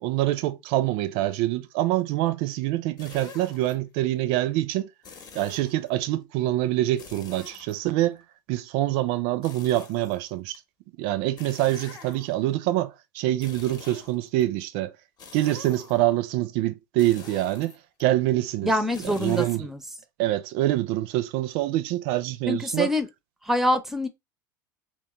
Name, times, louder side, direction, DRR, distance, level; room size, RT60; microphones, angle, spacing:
voice 1, 0.0-4.9 5.3-8.2 8.5-10.6 11.0-14.9 15.3-18.7 19.2-19.7 20.2-22.9, right 15 dB, 55° right, 0.4 m, -25 dB
sound 1, 3.0-3.7 5.0-5.9 7.0-8.2 9.4-10.6 11.4-12.5 13.3-14.4 15.2-16.2 17.0-18.0 18.9-19.6, left 6 dB, 40° left, 0.8 m, -46 dB
voice 2, 18.6-19.8 22.5-23.1 23.4-24.1, left 1 dB, 5° right, 0.5 m, -25 dB
3.0 x 2.2 x 2.9 m
hypercardioid pair, 80°, 11 cm